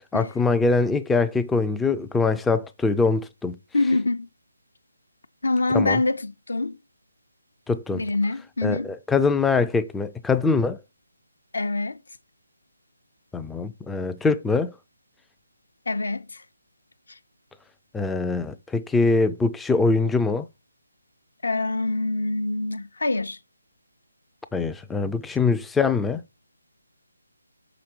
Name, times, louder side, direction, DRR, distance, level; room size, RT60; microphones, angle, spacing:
voice 1, 0.1-3.6 5.7-6.0 7.7-8.0 8.6-10.8 13.3-14.7 17.9-20.5 24.5-26.2, left 4 dB, 5° left, 0.3 m, -23 dB
voice 2, 3.7-4.3 5.4-6.8 7.9-8.9 11.5-12.0 15.9-16.4 17.1-17.2 21.4-23.4, left 2 dB, 70° left, 0.7 m, -25 dB
5.7 x 5.1 x 4.4 m
figure-of-eight pair, 155°, 0 cm